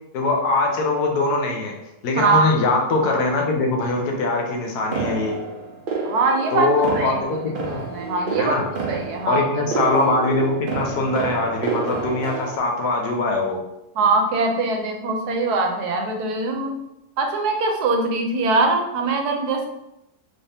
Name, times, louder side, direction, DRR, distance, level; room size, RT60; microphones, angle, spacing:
voice 1, 0.1-1.7 2.0-5.4 6.5-7.9 8.3-8.7 9.3-13.6, left 2 dB, 80° left, 1 dB, 1.3 m, -22 dB
voice 2, 2.2-2.5 6.0-6.7 6.9-7.1 7.7-8.6 8.9-9.7 14.0-16.7 17.2-19.7, right 3 dB, 85° right, 3 dB, 1.2 m, -22 dB
sound 1, 4.9-12.6, right 4 dB, 50° right, 0.7 m, -29 dB
3.9 x 2.7 x 3.3 m, 0.86 s
omnidirectional pair, 1.6 m